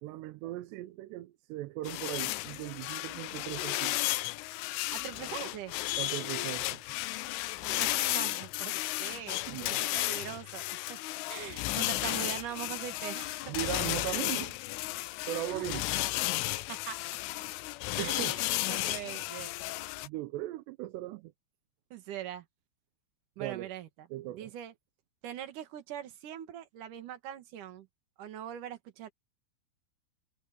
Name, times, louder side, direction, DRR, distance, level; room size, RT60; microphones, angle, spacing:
voice 1, 0.0-4.0 6.0-6.8 9.5-9.8 10.1-10.2 13.5-14.5 15.3-15.8 18.0-18.4 20.0-21.3 23.4-23.7 24.1-24.5, right 16 dB, 80° right, 2.6 m, -38 dB
sound 1, 1.9-20.1, left 19 dB, 90° left, 3.2 m, -34 dB
voice 2, 4.9-5.7 7.6-11.0 11.3-13.5 15.3-15.6 16.7-17.0 18.0-19.5 21.9-22.4 23.4-24.7 25.2-27.9 28.2-29.1, right 10 dB, 55° right, 2.5 m, -42 dB
omnidirectional pair, 5.7 m